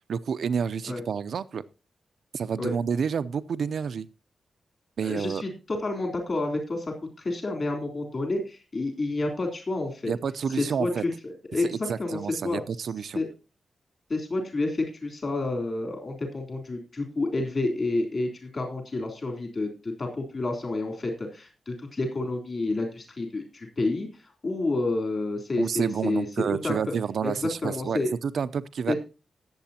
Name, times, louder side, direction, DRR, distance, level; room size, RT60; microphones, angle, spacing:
voice 1, 0.1-1.6 2.3-4.1 5.0-5.4 10.1-11.0 11.6-13.2 25.6-29.0, right 6 dB, 70° right, 14 dB, 0.6 m, -29 dB
voice 2, 5.0-6.9 7.2-10.1 10.6-12.6 13.1-13.3 14.1-26.3 26.6-26.8 27.2-27.3 27.6-28.1 28.9-29.0, left 2 dB, 40° left, 3 dB, 3.6 m, -29 dB
19.0 x 7.8 x 2.8 m, 0.31 s
wide cardioid pair, 135°, 0 cm